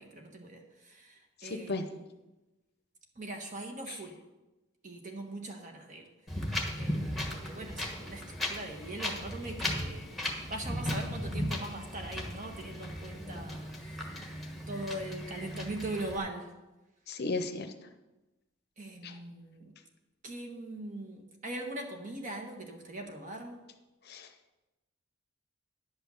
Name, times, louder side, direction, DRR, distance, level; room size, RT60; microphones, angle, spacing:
voice 1, 0.0-2.0 3.2-4.2 4.8-6.1 6.3-6.4 6.8-10.1 10.4-13.7 14.7-16.5 18.8-19.7 20.2-23.6, right 2 dB, 35° right, 3 dB, 1.4 m, -41 dB
voice 2, 1.4-1.8 3.9-4.0 17.1-17.7 19.0-19.2 24.1-24.3, left 3 dB, 50° left, 8 dB, 0.8 m, -35 dB
Wind, 6.3-16.2, left 1 dB, ahead, 1.3 m, -37 dB
10.5 x 5.6 x 7.0 m, 1.0 s
head